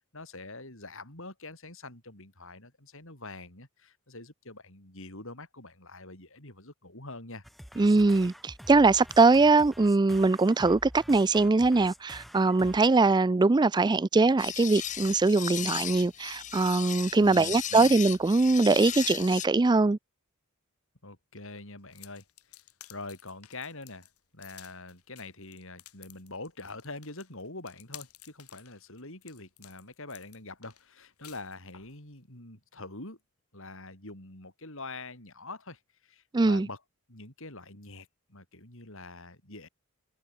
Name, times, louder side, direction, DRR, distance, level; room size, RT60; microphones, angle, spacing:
voice 1, 0.0-7.4 17.2-18.0 21.0-22.6 22.9-24.1 24.3-33.2 33.5-36.8 37.1-39.7, left 2 dB, 60° left, 7.0 m, -45 dB
sound 1, 7.4-12.8, equal, ahead, 3.0 m, -48 dB
voice 2, 7.8-20.0 36.3-36.7, right 3 dB, 20° right, 0.3 m, -22 dB
sound 2, 14.4-19.5, left 11 dB, 35° left, 0.8 m, -36 dB
sound 3, 21.9-32.0, left 13 dB, 80° left, 6.2 m, -53 dB
head